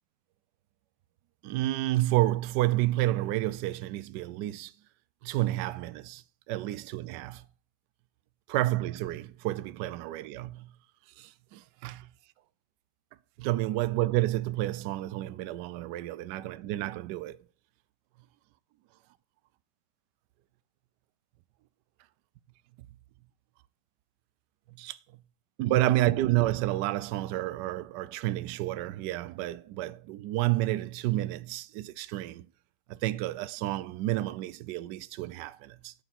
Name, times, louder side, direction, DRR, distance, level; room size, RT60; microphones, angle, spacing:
voice 1, 1.4-4.7 5.2-7.4 8.5-10.7 11.2-12.1 13.4-17.4 24.8-25.0 25.6-32.5 32.9-35.9, right 16 dB, 75° right, 1.0 m, -30 dB
8.1 x 6.8 x 5.9 m
omnidirectional pair, 2.3 m